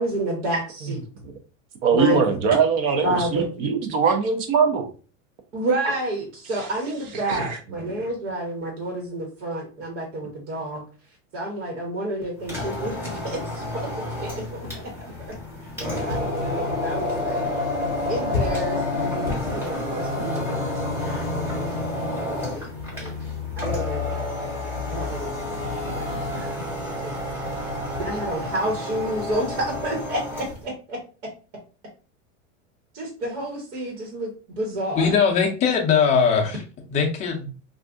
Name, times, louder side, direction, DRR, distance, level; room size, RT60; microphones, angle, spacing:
voice 1, 0.0-1.0 1.9-2.2 3.0-3.5 5.5-10.8 11.3-13.9 14.2-14.7 15.8-17.4 18.1-20.3 20.6-22.7 22.9-23.1 23.6-24.3 24.9-25.5 25.8-26.1 26.3-26.6 27.0-27.1 28.0-31.0 32.9-34.3 34.6-35.1, right 1 dB, 70° right, -1 dB, 1.3 m, -30 dB
voice 2, 0.8-1.4 1.8-4.9 6.5-6.7 7.3-7.6, right 5 dB, 40° right, 6 dB, 0.6 m, -22 dB
sound 1, 12.4-30.6, left 2 dB, 5° right, 0.8 m, -29 dB
voice 3, 34.9-36.6 36.9-37.5, left 6 dB, 20° left, 1 dB, 0.5 m, -20 dB
2.6 x 2.4 x 3.5 m, 0.36 s
supercardioid pair, 160°, 38 cm